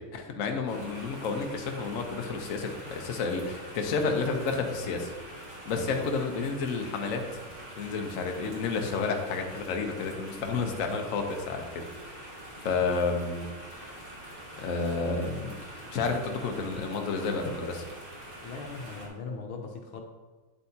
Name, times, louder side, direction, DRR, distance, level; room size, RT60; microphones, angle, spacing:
voice 1, 0.0-7.4 7.8-13.5 14.6-17.8, left 4 dB, 55° left, 3 dB, 1.0 m, -31 dB
sound 1, 0.7-19.1, right 1 dB, 30° right, 1.5 m, -45 dB
voice 2, 18.4-20.0, left 4 dB, 80° left, 3 dB, 1.6 m, -39 dB
8.9 x 8.1 x 2.8 m, 1.3 s
omnidirectional pair, 2.3 m